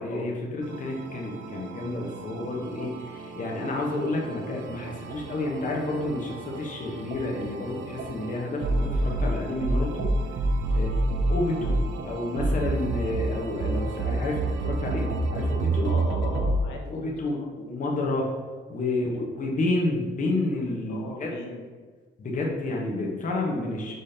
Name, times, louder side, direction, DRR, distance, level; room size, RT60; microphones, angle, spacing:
voice 1, 0.0-10.3 10.7-10.9 11.3-15.9 16.9-18.3 18.7-21.3 22.2-23.9, left 2 dB, 40° left, -1 dB, 0.9 m, -30 dB
sound 1, 0.6-16.6, right 2 dB, 80° right, 0.5 m, -29 dB
voice 2, 15.8-17.5 18.9-19.3 20.9-21.6, left 3 dB, 85° left, 1 dB, 0.9 m, -39 dB
5.1 x 3.7 x 2.8 m, 1.4 s
cardioid pair, 90°, 20 cm